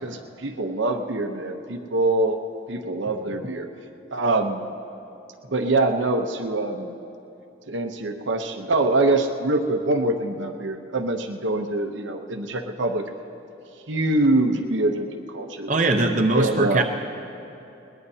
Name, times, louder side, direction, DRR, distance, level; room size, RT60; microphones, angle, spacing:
voice 1, 0.0-2.4 2.7-3.7 4.1-4.6 5.5-6.9 7.7-13.0 13.9-15.9 16.3-16.8, right 2 dB, 75° right, 4 dB, 0.9 m, -24 dB
voice 2, 15.7-16.8, right 2 dB, 40° right, 2 dB, 0.8 m, -21 dB
21.0 x 20.0 x 2.8 m, 2.7 s
head